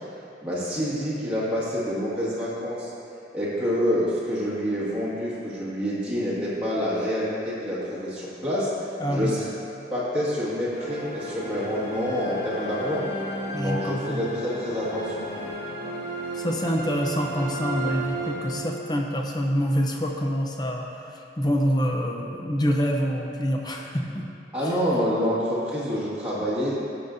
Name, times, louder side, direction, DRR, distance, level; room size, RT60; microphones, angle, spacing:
voice 1, 0.4-2.9 3.3-8.7 9.1-9.5 9.9-13.0 13.6-15.3 24.5-26.7, equal, 5° right, -10 dB, 1.9 m, -27 dB
voice 2, 9.0-9.3 13.5-14.2 16.3-24.3 24.6-24.7, equal, 20° left, 1 dB, 0.6 m, -26 dB
sound 1, 10.7-19.1, right 1 dB, 80° left, 1.9 m, -34 dB
14.0 x 6.9 x 2.7 m, 2.8 s
head